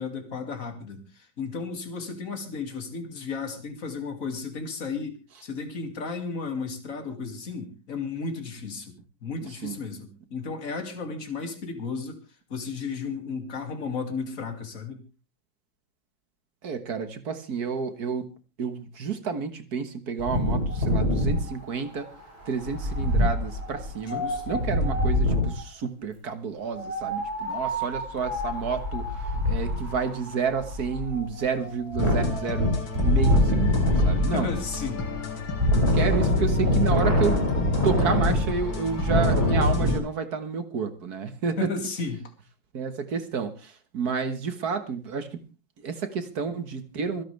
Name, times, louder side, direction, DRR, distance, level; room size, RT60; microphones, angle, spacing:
voice 1, 0.0-8.9 9.2-12.2 12.5-15.0 21.4-21.5 24.0-25.0 34.3-35.1 41.6-42.3, left 4 dB, 40° left, 5 dB, 2.8 m, -34 dB
voice 2, 9.4-9.8 16.6-18.3 18.6-22.1 22.5-34.5 35.8-41.7 42.7-45.4 45.8-47.2, right 5 dB, 55° right, 10 dB, 1.8 m, -30 dB
Wind, 20.2-25.6 26.7-39.9, left 1 dB, 30° right, 6.3 m, -25 dB
sound 1, 32.0-40.0, left 5 dB, 75° left, 2.9 m, -34 dB
26.0 x 10.5 x 3.4 m, 0.32 s
omnidirectional pair, 2.1 m